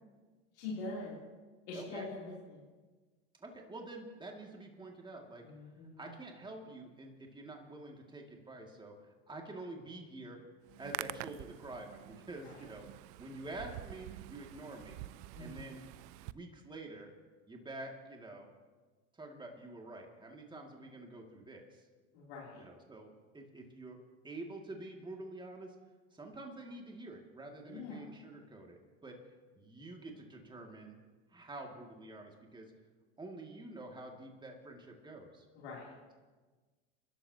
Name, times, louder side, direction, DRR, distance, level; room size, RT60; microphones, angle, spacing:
voice 1, 0.5-1.1 1.7-2.6 5.4-6.0 12.4-12.5 15.3-15.6 22.1-22.6 27.7-28.1 35.6-36.0, left 3 dB, 80° left, -5 dB, 3.2 m, -44 dB
voice 2, 1.7-2.1 3.4-5.5 6.0-10.4 10.8-12.9 13.2-15.0 15.4-15.8 16.2-17.1 17.5-18.5 19.1-21.9 22.6-24.0 24.2-25.8 26.1-29.2 29.6-31.0 31.3-32.7 33.2-35.5, right 2 dB, 15° right, 1 dB, 2.3 m, -48 dB
Hands, 10.6-16.3, right 18 dB, 60° right, 0.5 m, -47 dB
27.5 x 12.0 x 2.9 m, 1.3 s
hypercardioid pair, 95°, 33 cm